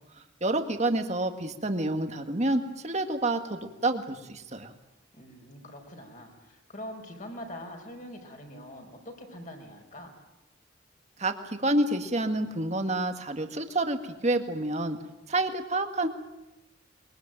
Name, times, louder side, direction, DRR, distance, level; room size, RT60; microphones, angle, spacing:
voice 1, 0.4-4.7 11.2-15.0 15.3-16.1, right 2 dB, 35° right, 6 dB, 1.9 m, -28 dB
voice 2, 5.1-10.1, equal, 40° left, 3 dB, 5.1 m, -43 dB
22.5 x 22.5 x 9.1 m, 0.97 s
head